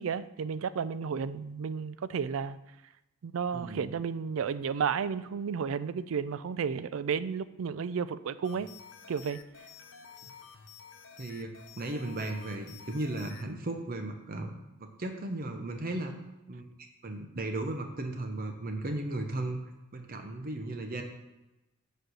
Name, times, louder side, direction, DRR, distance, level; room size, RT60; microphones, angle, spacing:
voice 1, 0.0-2.6 3.2-8.7 9.1-9.4, right 6 dB, 75° right, 15 dB, 0.4 m, -32 dB
voice 2, 3.5-3.9 10.2-10.3 11.2-14.5 14.8-16.1 16.5-19.6 19.9-21.0, right 2 dB, 45° right, 5 dB, 0.8 m, -36 dB
sound 1, 8.4-13.5, left 7 dB, 65° left, 0.7 m, -51 dB
7.8 x 4.4 x 6.4 m, 0.97 s
head